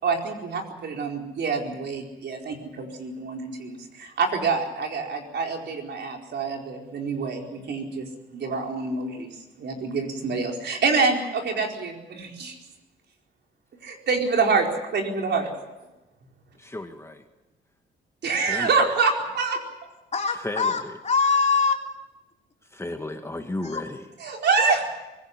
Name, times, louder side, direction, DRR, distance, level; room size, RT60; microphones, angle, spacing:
voice 1, 0.0-9.3 9.6-12.6 13.8-15.5 18.2-19.6 24.2-24.8, right 4 dB, 60° right, 2 dB, 4.5 m, -26 dB
voice 2, 16.6-17.2 18.5-18.7 20.4-20.9 22.7-24.0, left 2 dB, 15° left, 5 dB, 1.8 m, -33 dB
voice 3, 20.1-21.8 23.6-23.8 24.6-24.9, left 5 dB, 35° left, 2 dB, 3.3 m, -24 dB
23.5 x 16.5 x 9.7 m, 1.1 s
cardioid pair, 90°, 20 cm